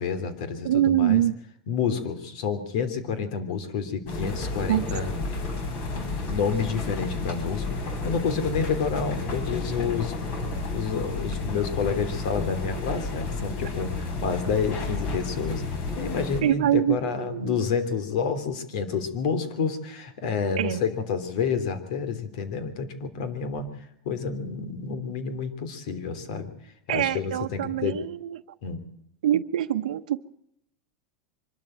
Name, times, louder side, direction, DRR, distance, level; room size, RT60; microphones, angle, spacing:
voice 1, 0.0-1.2 1.7-5.1 5.9-10.3 10.7-15.6 15.9-23.7 24.0-28.0 28.6-28.8, left 6 dB, 65° left, 11 dB, 3.3 m, -29 dB
voice 2, 0.6-1.3 4.7-4.9 16.4-17.6 20.6-20.8 26.9-28.4 29.2-30.2, right 12 dB, 90° right, 6 dB, 1.0 m, -24 dB
sound 1, 4.1-16.4, left 3 dB, 45° left, 5.8 m, -31 dB
24.5 x 12.5 x 9.0 m, 0.74 s
supercardioid pair, 140°, 4 cm